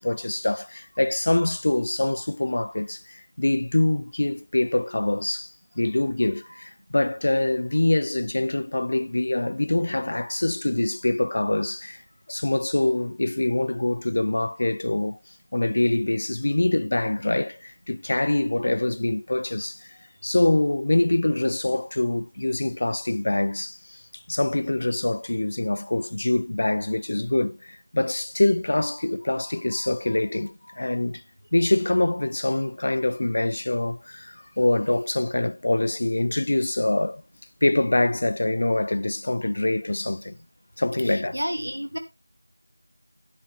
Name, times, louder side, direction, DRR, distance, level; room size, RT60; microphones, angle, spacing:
voice 1, 0.0-12.0 12.3-15.2 15.5-31.2 31.5-37.2 37.6-40.4 40.8-41.4, left 2 dB, 40° left, 0.5 m, -24 dB
voice 2, 41.0-42.0, equal, 85° right, 2.5 m, -31 dB
10.0 x 10.0 x 3.5 m
figure-of-eight pair, 170°, 0 cm